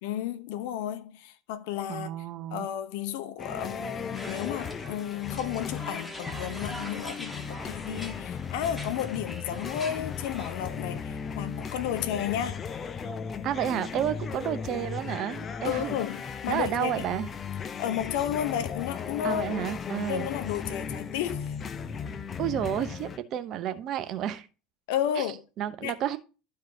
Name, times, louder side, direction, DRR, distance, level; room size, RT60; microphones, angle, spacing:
voice 1, 0.0-2.1 2.5-12.6 15.6-17.1 17.8-19.7 20.1-21.5 24.9-25.4 25.8-25.9, left 10 dB, 60° left, 0.8 m, -32 dB
voice 2, 1.9-2.7 13.4-16.0 16.5-17.3 19.2-20.3 22.4-24.5 25.2-25.3 25.6-26.2, right 10 dB, 45° right, 0.8 m, -31 dB
sound 1, 3.4-23.2, left 6 dB, 30° left, 0.7 m, -36 dB
sound 2, 4.1-10.5, equal, 5° left, 1.8 m, -43 dB
12.0 x 4.8 x 2.8 m
figure-of-eight pair, 70°, 0 cm